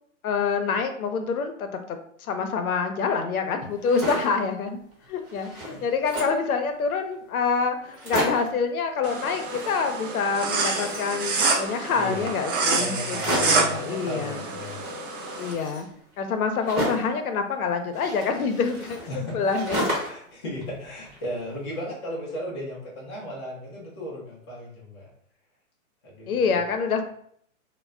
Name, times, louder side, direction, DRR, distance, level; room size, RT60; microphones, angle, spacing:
voice 1, 0.2-4.8 5.1-14.4 15.4-15.9 16.2-19.0 19.3-19.8 26.3-27.1, left 5 dB, 80° left, 6 dB, 0.6 m, -26 dB
sound 1, 3.7-4.4 4.9-5.0 5.2-6.5 7.1-7.2 7.4-7.5 7.8-8.6 9.3-10.1 10.4-11.7 13.1-13.7 14.7-17.2 17.9-20.3 20.6-21.5, equal, 20° right, 1.0 m, -33 dB
voice 2, 5.7-6.1 11.9-12.3 12.8-14.9 19.1-25.1 26.0-26.6, left 1 dB, 20° left, -5 dB, 0.4 m, -36 dB
sound 2, 9.0-15.5, right 4 dB, 40° right, 0.5 m, -27 dB
2.1 x 2.1 x 3.5 m, 0.65 s
hypercardioid pair, 145°, 42 cm